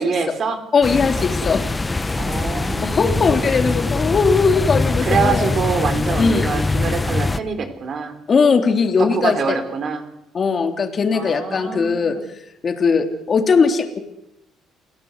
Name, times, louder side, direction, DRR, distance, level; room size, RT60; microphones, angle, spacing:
voice 1, 0.0-0.6 2.2-3.4 5.0-8.1 9.0-10.1 11.1-12.2, right 5 dB, 50° right, 8 dB, 3.9 m, -25 dB
voice 2, 0.7-1.6 2.9-5.5 6.2-6.5 8.3-9.6 10.3-12.1 12.6-14.0, left 5 dB, 40° left, 5 dB, 3.3 m, -19 dB
sound 1, 0.8-7.4, left 3 dB, 15° left, 1.3 m, -22 dB
29.5 x 17.5 x 8.1 m, 0.86 s
cardioid pair, 105°, 0 cm